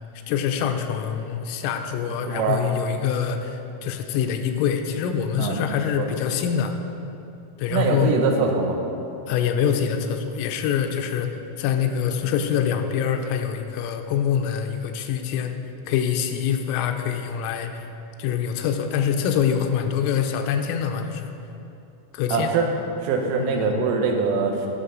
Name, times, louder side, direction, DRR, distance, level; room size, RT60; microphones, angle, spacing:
voice 1, 0.3-6.8 7.6-8.2 9.3-11.3 11.6-15.5 15.9-17.9 18.2-21.3 22.1-22.5 23.6-23.8, left 8 dB, 85° left, 6 dB, 3.2 m, -25 dB
voice 2, 2.3-2.6 5.4-6.1 7.7-8.8 22.3-22.7 23.0-24.7, right 4 dB, 90° right, 2 dB, 3.5 m, -23 dB
12.0 x 6.6 x 3.9 m, 2.8 s
omnidirectional pair, 5.8 m